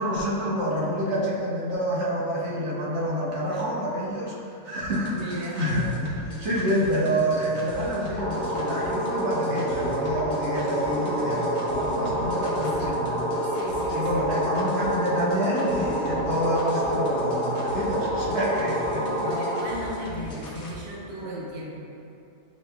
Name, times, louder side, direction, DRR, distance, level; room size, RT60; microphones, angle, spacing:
voice 1, 0.0-13.3 13.9-19.1 21.2-21.3, equal, 55° right, -6 dB, 0.9 m, -28 dB
sound 1, 4.8-20.8, left 2 dB, 55° left, 0.6 m, -38 dB
voice 2, 5.1-5.7 12.4-13.0 13.5-14.5 19.2-21.8, right 1 dB, 75° right, -5 dB, 1.4 m, -36 dB
sound 2, 8.2-19.6, equal, 5° left, 1.0 m, -28 dB
6.9 x 3.1 x 2.2 m, 2.7 s
omnidirectional pair, 1.7 m